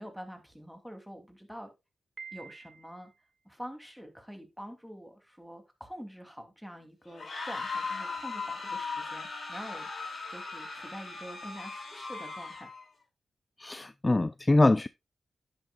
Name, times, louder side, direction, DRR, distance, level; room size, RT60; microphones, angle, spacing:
voice 1, 0.0-1.7 2.3-3.1 3.4-9.9 10.3-12.7, equal, ahead, 2.8 m, -46 dB
Piano, 2.2-3.2, right 5 dB, 55° right, 1.4 m, -47 dB
sound 1, 7.1-12.8, left 4 dB, 65° left, 5.2 m, -38 dB
voice 2, 13.6-14.9, left 2 dB, 25° left, 0.4 m, -24 dB
10.0 x 9.0 x 2.4 m
cardioid pair, 55°, 0 cm